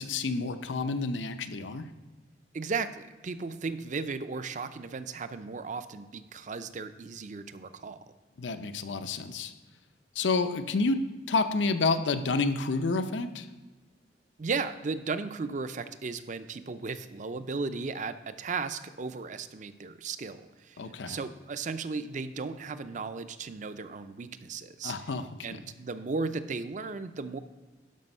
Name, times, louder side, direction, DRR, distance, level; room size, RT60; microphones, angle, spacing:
voice 1, 0.0-1.9 8.4-9.5 10.2-13.5 20.8-21.2 24.8-25.3, left 3 dB, 90° left, 9 dB, 0.7 m, -29 dB
voice 2, 2.5-8.0 14.4-25.1 25.4-27.4, right 4 dB, 45° right, 12 dB, 0.5 m, -35 dB
11.5 x 5.1 x 5.4 m, 1.2 s
head